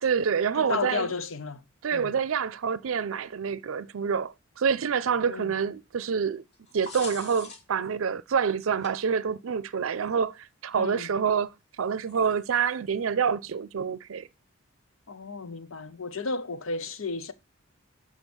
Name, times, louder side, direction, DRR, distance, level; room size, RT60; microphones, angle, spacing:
voice 1, 0.0-1.1 1.8-6.4 6.7-14.3, right 6 dB, 85° right, 0.5 m, -27 dB
voice 2, 0.5-1.6 1.9-2.2 5.3-5.5 10.7-11.1 15.1-17.3, left 4 dB, 80° left, 0.9 m, -33 dB
sound 1, 6.5-7.9 8.8-8.9 10.1-10.2 12.1-12.7, left 4 dB, 55° left, 2.1 m, -43 dB
7.1 x 5.9 x 6.1 m
head